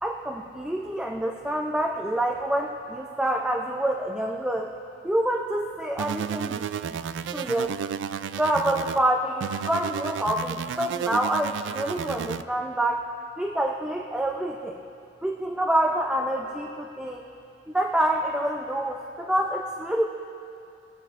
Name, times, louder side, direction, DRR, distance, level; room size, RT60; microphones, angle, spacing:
voice 1, 0.0-4.7 5.0-7.0 7.3-7.8 8.3-13.1 13.4-14.8 15.2-17.2 17.7-20.0, right 1 dB, 5° right, 0 dB, 0.5 m, -27 dB
sound 1, 6.0-9.0 9.4-12.4, right 7 dB, 80° right, 0.3 m, -32 dB
24.0 x 9.0 x 2.5 m, 2.7 s
head